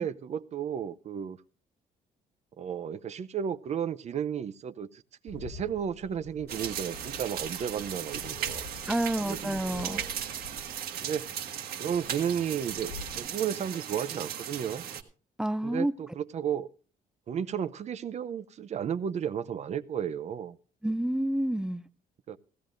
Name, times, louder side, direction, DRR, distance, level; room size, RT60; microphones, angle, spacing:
voice 1, 0.0-1.4 2.6-8.6 9.2-10.1 11.0-11.3 11.8-14.8 15.6-16.7 17.3-20.6 22.3-22.4, right 8 dB, 45° right, 0.6 m, -33 dB
Bird, 5.3-13.3, left 5 dB, 85° left, 0.9 m, -47 dB
sound 1, 6.5-15.0, right 9 dB, 75° right, 1.5 m, -37 dB
voice 2, 8.9-10.0 15.4-15.9 20.8-21.8, right 1 dB, 5° right, 0.5 m, -29 dB
16.5 x 16.0 x 2.6 m
cardioid pair, 140°, 16 cm